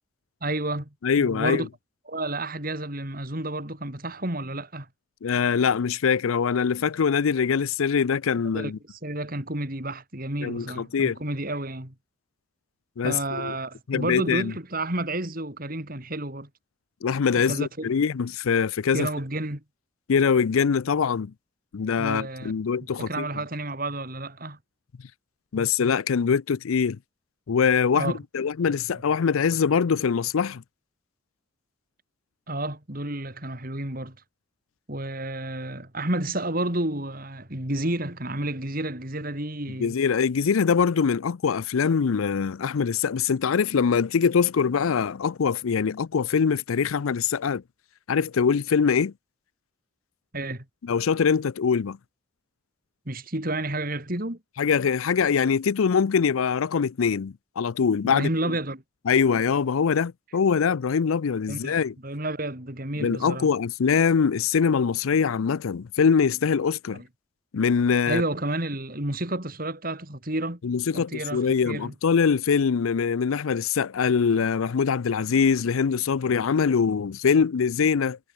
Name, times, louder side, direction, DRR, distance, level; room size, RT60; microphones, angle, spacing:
voice 1, 0.4-1.7 2.1-4.9 8.5-11.9 13.0-16.5 17.5-17.9 18.9-19.6 22.0-22.5 23.0-24.6 27.9-28.2 28.6-28.7 32.5-34.2 34.9-40.0 50.3-50.6 53.1-54.4 58.0-58.8 61.5-61.8 62.0-63.5 66.9-67.1 68.1-70.6 70.9-71.9, right 1 dB, 45° right, 3.8 m, -31 dB
voice 2, 1.0-1.7 5.2-8.8 10.4-11.2 13.0-13.5 13.9-14.5 17.0-19.1 20.1-21.3 21.7-23.3 25.5-27.0 27.5-30.6 39.8-47.6 48.1-49.1 50.8-52.0 54.6-58.3 59.1-61.9 63.0-67.0 67.5-68.2 70.6-78.2, left 6 dB, 85° left, 0.5 m, -23 dB
head